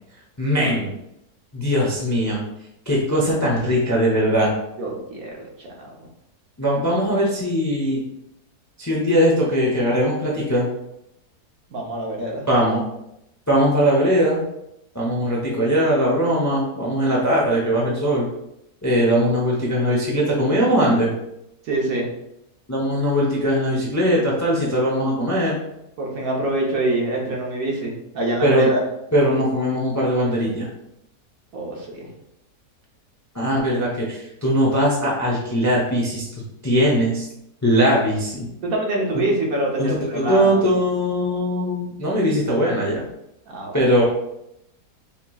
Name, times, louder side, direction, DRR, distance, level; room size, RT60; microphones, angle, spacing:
voice 1, 0.4-0.9 1.5-2.4 2.9-4.5 6.6-8.0 8.8-10.7 12.5-12.8 13.5-14.4 14.9-18.3 18.8-21.1 22.7-25.6 28.4-28.7 29.1-30.7 33.3-36.2 36.6-37.3 37.6-38.5 39.1-39.2 39.8-43.0 43.7-44.0, equal, 15° left, -4 dB, 0.5 m, -20 dB
voice 2, 4.8-6.1 11.7-12.5 21.6-22.1 26.0-28.8 31.5-32.1 38.6-40.6 43.5-43.8, right 2 dB, 65° right, -2 dB, 1.4 m, -25 dB
5.7 x 2.9 x 2.3 m, 0.81 s
omnidirectional pair, 1.7 m